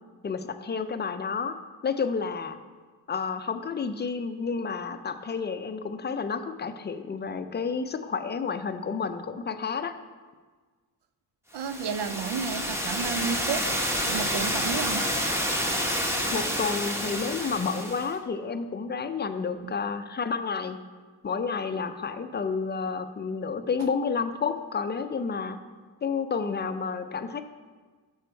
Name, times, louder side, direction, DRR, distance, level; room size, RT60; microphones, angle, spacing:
voice 1, 0.2-1.6 1.8-2.6 3.1-9.9 16.3-20.8 21.2-25.6 26.0-27.4, left 5 dB, 25° left, 9 dB, 0.4 m, -30 dB
voice 2, 11.5-13.7 14.0-15.0 19.6-19.8, right 6 dB, 80° right, 11 dB, 0.6 m, -32 dB
sound 1, 11.6-18.1, equal, 5° right, 1.0 m, -29 dB
6.7 x 5.5 x 4.4 m, 1.4 s
cardioid pair, 80°, 41 cm